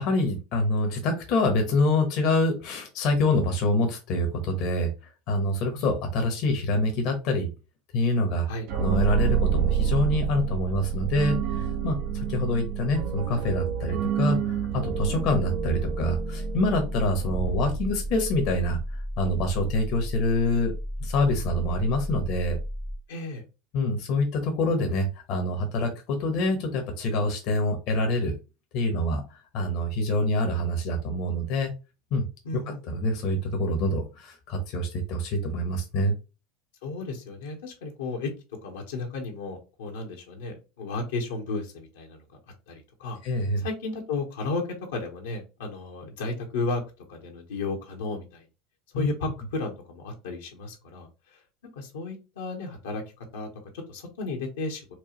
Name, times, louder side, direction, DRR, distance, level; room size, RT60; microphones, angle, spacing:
voice 1, 0.0-4.9 5.3-7.5 7.9-8.5 8.8-18.8 19.2-20.7 21.0-22.6 23.7-28.4 28.7-29.2 29.5-31.7 32.1-32.2 32.9-36.1 43.2-43.6 48.9-49.1, left 1 dB, 55° left, 4 dB, 1.0 m, -26 dB
sound 1, 8.7-18.3, right 8 dB, 65° right, 0.6 m, -28 dB
sound 2, 14.9-23.0, equal, ahead, 0.5 m, -34 dB
voice 2, 23.1-23.4 32.4-32.8 36.8-38.3 38.6-42.2 42.7-43.2 43.6-44.6 44.9-46.8 47.1-48.4 48.9-51.4 51.7-53.0 53.3-53.5 53.9-54.8, left 3 dB, 75° left, 1 dB, 1.1 m, -33 dB
4.5 x 2.3 x 3.0 m, 0.29 s
hypercardioid pair, 85°, 0 cm